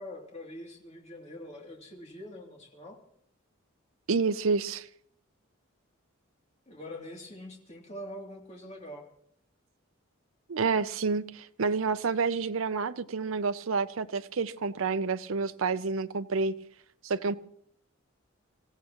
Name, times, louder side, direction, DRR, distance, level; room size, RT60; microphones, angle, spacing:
voice 1, 0.0-3.0 6.7-9.0, left 1 dB, 30° left, 2.8 m, -44 dB
voice 2, 4.1-4.9 10.5-16.5 17.0-17.4, right 4 dB, 75° right, 0.6 m, -29 dB
25.0 x 15.5 x 3.0 m
head